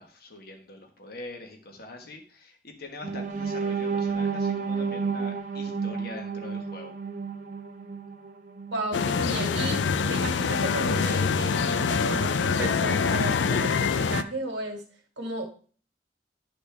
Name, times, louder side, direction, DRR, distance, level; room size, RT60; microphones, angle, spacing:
voice 1, 0.0-6.9, left 2 dB, 60° left, 3 dB, 1.4 m, -43 dB
sound 1, 3.0-9.0 9.4-9.6 10.0-10.2, right 5 dB, 45° right, 0.8 m, -31 dB
voice 2, 8.7-14.8 15.2-15.4, right 2 dB, 80° right, 3 dB, 2.0 m, -34 dB
sound 2, 8.9-14.2, left 5 dB, 90° left, 0.4 m, -25 dB
11.5 x 4.2 x 3.5 m, 0.41 s
head